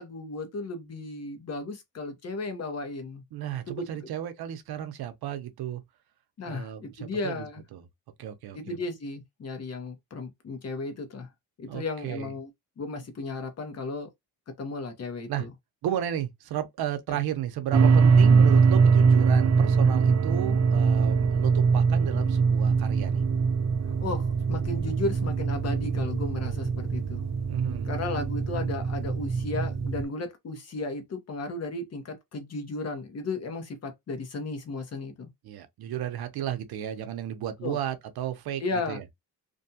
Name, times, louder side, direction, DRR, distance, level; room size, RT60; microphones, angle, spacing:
voice 1, 0.0-3.2 3.7-3.9 6.4-7.6 8.5-11.3 11.6-12.5 12.8-14.1 14.6-15.5 17.1-17.2 24.0-27.2 27.8-35.3 37.6-37.8 38.6-39.0, left 3 dB, 45° left, 0.9 m, -34 dB
voice 2, 3.3-5.8 6.5-7.4 7.7-7.8 8.2-8.8 11.7-12.3 15.3-15.5 15.8-23.2 27.5-28.0 35.4-39.0, right 11 dB, 80° right, 0.7 m, -33 dB
sound 1, 17.7-30.0, right 5 dB, 45° right, 0.6 m, -22 dB
2.6 x 2.3 x 2.7 m
cardioid pair, 120°, 37 cm